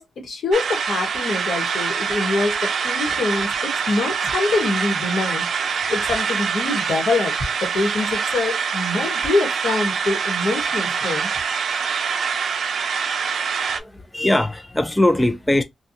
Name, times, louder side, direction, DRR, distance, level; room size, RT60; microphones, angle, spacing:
voice 1, 0.0-7.3 7.6-11.3, left 3 dB, 85° left, 1.5 m, -25 dB
sound 1, 0.5-13.8, right 6 dB, 75° right, 0.5 m, -24 dB
voice 2, 13.7-15.6, left 1 dB, 10° left, 0.4 m, -20 dB
3.3 x 2.4 x 2.7 m
wide cardioid pair, 120°, 0 cm